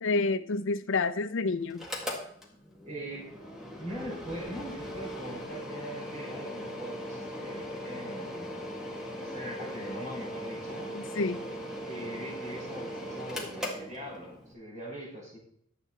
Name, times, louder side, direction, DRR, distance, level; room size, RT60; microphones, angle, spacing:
voice 1, 0.0-1.8 10.9-11.4, left 3 dB, 60° left, 0.6 m, -29 dB
Mechanical fan, 1.7-14.5, equal, ahead, 1.7 m, -39 dB
voice 2, 2.8-3.3 3.7-8.7 9.1-10.9 11.8-15.4, right 1 dB, 35° right, 5.4 m, -41 dB
11.5 x 8.2 x 4.2 m
head